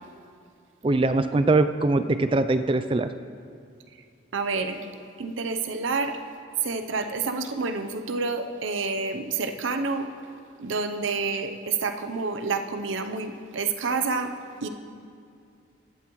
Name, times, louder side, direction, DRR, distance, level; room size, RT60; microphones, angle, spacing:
voice 1, 0.8-3.1, right 2 dB, 25° right, 10 dB, 0.3 m, -22 dB
voice 2, 4.3-4.8 5.2-6.2 6.6-10.1 10.6-14.3 14.6-14.7, right 4 dB, 90° right, 8 dB, 0.7 m, -28 dB
15.0 x 12.0 x 3.1 m, 2.4 s
head